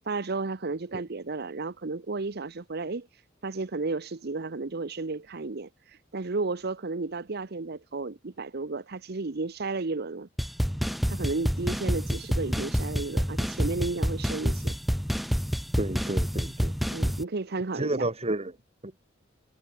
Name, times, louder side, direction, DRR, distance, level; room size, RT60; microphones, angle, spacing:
voice 1, 0.0-10.3 11.1-14.8 16.9-18.1, right 3 dB, 55° right, 0.9 m, -33 dB
sound 1, 10.4-17.2, equal, ahead, 2.7 m, -28 dB
voice 2, 15.8-16.7 17.8-18.5, right 2 dB, 35° right, 2.3 m, -30 dB
head